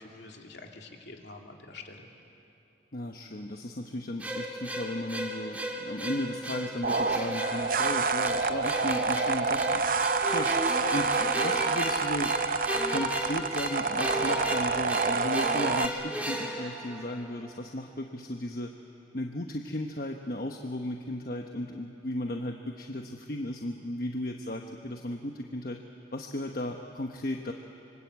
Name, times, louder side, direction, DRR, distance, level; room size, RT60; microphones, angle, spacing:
voice 1, 0.0-2.1, left 3 dB, 65° left, 2 dB, 2.8 m, -46 dB
voice 2, 2.9-12.3 12.9-18.7 19.1-25.8 26.1-27.5, left 1 dB, 50° left, 3 dB, 1.1 m, -35 dB
sound 1, 4.2-17.5, right 1 dB, 10° right, 2.4 m, -34 dB
sound 2, 6.8-15.9, right 4 dB, 50° right, 0.7 m, -28 dB
26.5 x 25.0 x 8.3 m, 2.8 s
head